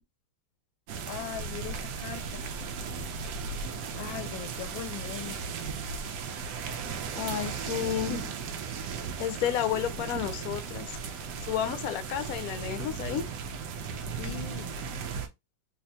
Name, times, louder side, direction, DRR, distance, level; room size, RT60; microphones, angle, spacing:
sound 1, 0.9-15.3, right 5 dB, 75° right, 1.2 m, -36 dB
voice 1, 1.1-2.2 4.0-5.4 14.2-14.7, left 11 dB, 90° left, 1.3 m, -39 dB
voice 2, 7.2-8.4 9.2-11.2 11.5-13.3, left 10 dB, 65° left, 0.9 m, -31 dB
3.4 x 3.1 x 2.8 m
omnidirectional pair, 2.0 m